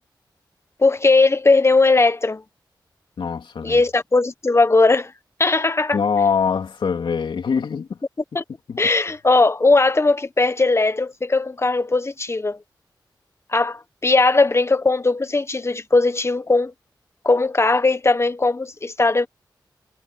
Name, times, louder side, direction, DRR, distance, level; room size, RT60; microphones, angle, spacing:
voice 1, 0.8-2.4 3.6-5.1 5.4-6.0 8.3-8.4 8.8-12.6 13.5-16.7 17.2-19.3, left 3 dB, 35° left, 1.4 m, -18 dB
voice 2, 3.2-3.8 5.9-8.0 8.7-8.8, left 6 dB, 80° left, 3.1 m, -23 dB
cardioid pair, 65°, 8 cm